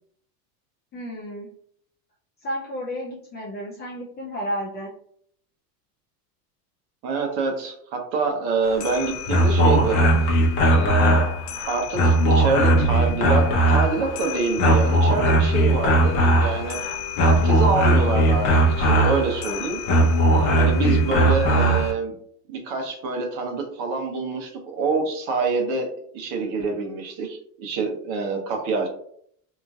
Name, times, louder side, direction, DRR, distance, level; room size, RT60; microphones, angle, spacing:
voice 1, 0.9-1.5 2.4-4.9 20.8-21.2, equal, 25° left, -2 dB, 0.3 m, -32 dB
voice 2, 7.0-10.0 10.2-10.3 10.6-11.3 11.7-16.8 17.2-19.8 20.3-22.1 22.5-25.9 26.1-28.9, right 4 dB, 55° right, 3 dB, 1.0 m, -26 dB
sound 1, 8.6-21.9, right 1 dB, 45° left, 0.9 m, -19 dB
2.9 x 2.5 x 2.3 m, 0.65 s
supercardioid pair, 115°, 48 cm